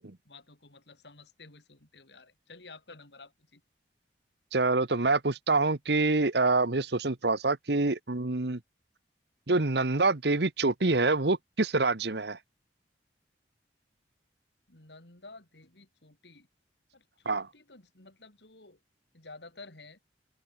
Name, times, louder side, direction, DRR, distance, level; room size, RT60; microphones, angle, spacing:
voice 1, 0.3-3.6 14.7-16.5 16.9-18.8 19.1-20.0, left 3 dB, 75° left, 4.2 m, -52 dB
voice 2, 4.5-8.6 9.5-12.4 17.2-17.5, right 3 dB, 65° right, 1.2 m, -26 dB
open air
head